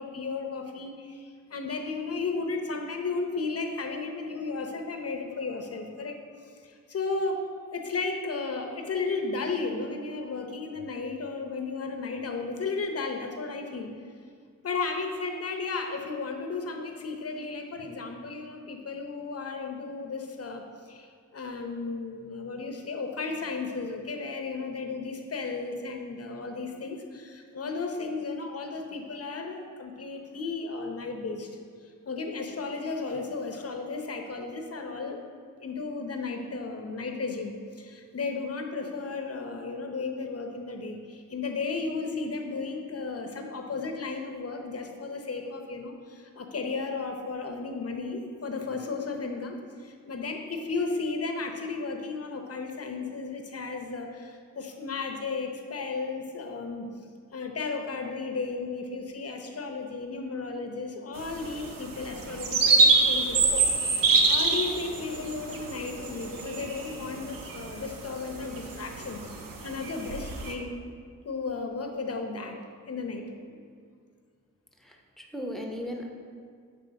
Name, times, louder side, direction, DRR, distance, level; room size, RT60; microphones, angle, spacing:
voice 1, 0.0-6.2 6.6-13.9 14.6-31.5 31.8-35.2 35.6-56.9 57.3-69.2 69.6-70.8 71.2-72.6 72.9-73.6, left 4 dB, 45° left, 4 dB, 0.8 m, -34 dB
sound 1, 61.2-70.5, right 3 dB, 80° right, 0.7 m, -26 dB
voice 2, 74.8-76.1, equal, ahead, 0 dB, 0.9 m, -37 dB
6.8 x 3.3 x 5.1 m, 2.1 s
cardioid pair, 60°, 33 cm